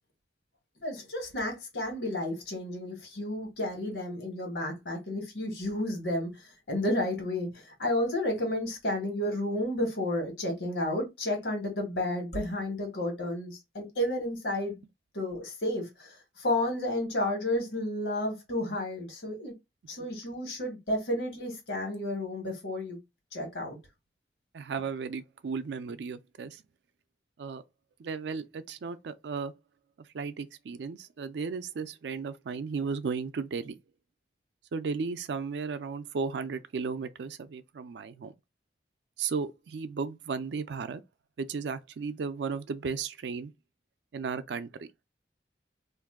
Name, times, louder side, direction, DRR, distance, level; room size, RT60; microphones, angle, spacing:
voice 1, 0.8-14.8 15.1-19.5 19.9-23.0 23.3-23.8, left 1 dB, 85° left, 1.3 m, -32 dB
voice 2, 24.5-26.6 27.4-27.6 28.0-29.5 30.1-33.8 34.7-38.3 39.2-41.0 41.4-43.5 44.1-44.9, right 5 dB, 80° right, 0.4 m, -35 dB
2.6 x 2.2 x 3.5 m
head